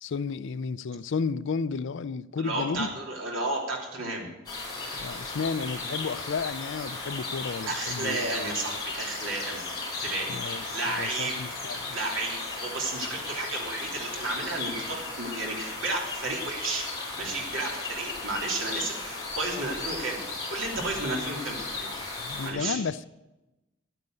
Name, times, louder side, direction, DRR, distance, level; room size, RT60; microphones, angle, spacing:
voice 1, 0.0-2.9 4.9-8.3 10.3-10.7 10.9-12.0 22.2-23.1, left 5 dB, 65° left, 0.4 m, -32 dB
voice 2, 2.4-4.3 7.7-9.6 10.0-11.4 11.9-16.8 17.2-20.2 20.5-21.9 22.4-22.8, right 2 dB, 70° right, 3.2 m, -32 dB
sound 1, 4.5-22.5, left 3 dB, 20° left, 4.4 m, -35 dB
10.5 x 9.2 x 7.8 m
head